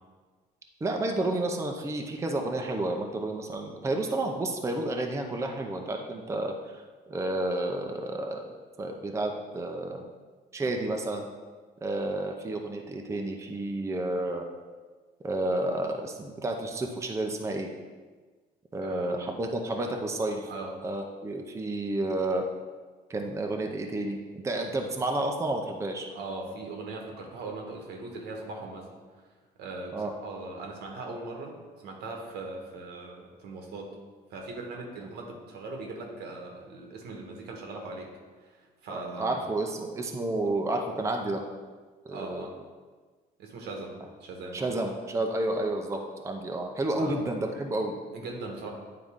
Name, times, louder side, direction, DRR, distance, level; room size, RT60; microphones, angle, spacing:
voice 1, 0.8-8.4 8.8-10.0 10.5-11.3 11.8-14.4 15.2-17.7 18.7-20.5 20.8-22.5 23.1-24.2 24.4-26.1 29.9-30.1 38.9-41.4 42.1-42.5 44.5-47.9, right 2 dB, 15° right, 2 dB, 0.6 m, -31 dB
voice 2, 18.8-19.3 20.5-20.7 26.1-28.9 29.6-33.9 34.3-38.1 38.4-39.4 42.1-42.5 43.4-44.7 47.0-47.1 48.1-48.7, right 2 dB, 80° right, 1 dB, 1.3 m, -40 dB
9.1 x 3.8 x 3.6 m, 1.4 s
cardioid pair, 110°, 17 cm